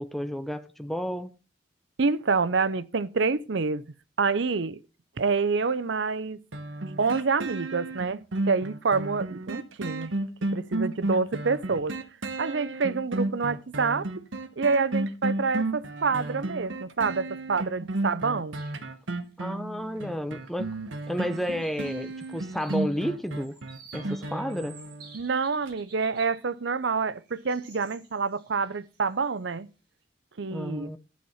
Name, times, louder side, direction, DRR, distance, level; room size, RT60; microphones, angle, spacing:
voice 1, 0.0-1.3 19.4-20.7 21.1-23.6 23.9-24.8 30.5-31.0, equal, ahead, 0.6 m, -31 dB
voice 2, 2.0-3.9 4.2-4.8 5.2-6.4 7.0-8.2 8.5-10.1 10.5-11.9 12.4-14.1 14.6-18.6 25.1-29.7 30.4-30.9, right 4 dB, 70° right, 0.7 m, -27 dB
sound 1, 6.5-25.2 25.7-25.8, right 2 dB, 85° right, 1.2 m, -33 dB
sound 2, 18.6-18.9 19.2-19.3 20.3-20.7 21.0-26.5 26.8-29.5, right 4 dB, 50° right, 5.9 m, -53 dB
12.5 x 8.6 x 5.6 m
head